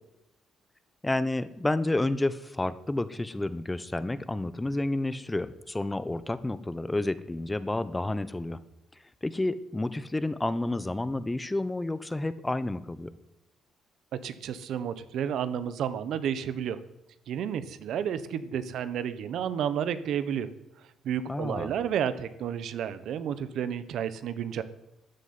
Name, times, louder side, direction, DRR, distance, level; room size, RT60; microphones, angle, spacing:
voice 1, 1.0-8.6 9.2-13.1 21.3-21.7, left 2 dB, 15° left, 15 dB, 1.1 m, -30 dB
voice 2, 14.1-16.8 17.3-20.5 21.0-24.6, right 9 dB, 75° right, 13 dB, 1.3 m, -31 dB
13.5 x 9.6 x 9.7 m, 0.90 s
cardioid pair, 90°, 0 cm